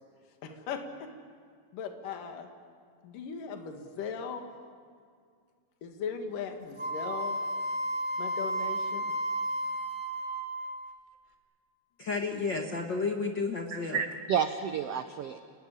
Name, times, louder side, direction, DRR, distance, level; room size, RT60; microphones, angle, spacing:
voice 1, 0.4-1.1 1.7-2.5 3.0-4.5 5.8-7.4 8.2-9.1, left 6 dB, 70° left, 5 dB, 3.4 m, -38 dB
Wind instrument woodwind instrument, 6.8-10.9, right 1 dB, 15° right, 1.9 m, -33 dB
voice 2, 12.0-14.0, left 4 dB, 50° left, 2 dB, 1.4 m, -32 dB
voice 3, 13.7-15.4, right 7 dB, 90° right, 8 dB, 1.3 m, -31 dB
29.5 x 18.0 x 9.9 m, 2.1 s
omnidirectional pair, 4.1 m